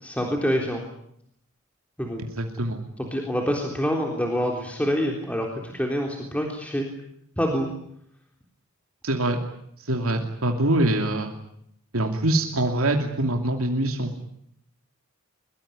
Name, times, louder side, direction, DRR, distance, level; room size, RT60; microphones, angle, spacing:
voice 1, 0.0-0.8 2.0-2.2 3.0-6.9 7.4-7.7, equal, 5° left, 1 dB, 3.6 m, -26 dB
voice 2, 2.4-3.1 9.0-9.4 9.8-11.3 11.9-14.2, right 1 dB, 75° right, 3 dB, 2.7 m, -24 dB
23.0 x 22.5 x 10.0 m, 0.72 s
head